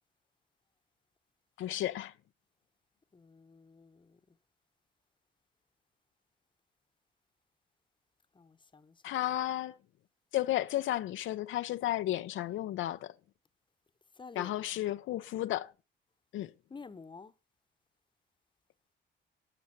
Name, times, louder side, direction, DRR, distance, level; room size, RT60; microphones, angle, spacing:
voice 1, 1.6-2.1 9.0-9.7 10.3-13.1 14.4-15.7 16.3-16.5, left 13 dB, 80° left, 0.6 m, -33 dB
voice 2, 3.1-4.4 8.3-9.0 14.2-14.6 16.7-17.3, left 4 dB, 25° left, 1.0 m, -50 dB
12.0 x 6.9 x 5.9 m
cardioid pair, 90°, 20 cm